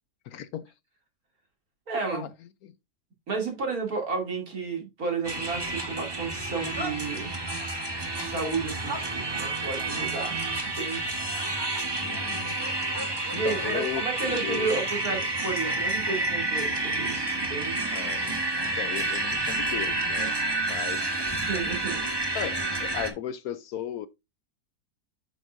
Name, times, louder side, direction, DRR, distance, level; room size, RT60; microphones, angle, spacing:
voice 1, 0.3-0.7 2.1-2.3 2.6-2.7 12.0-12.6 13.3-14.0 14.3-14.7 15.1-15.3 17.9-18.4 18.6-20.4 20.7-21.2 22.3-24.1, left 10 dB, 70° left, 1.0 m, -36 dB
voice 2, 1.9-2.3 3.3-7.3 8.2-11.1 13.3-17.8 21.4-22.0, right 4 dB, 60° right, 3.1 m, -32 dB
sound 1, 5.2-23.1, right 2 dB, 15° right, 1.1 m, -29 dB
8.2 x 7.1 x 2.6 m
omnidirectional pair, 1.8 m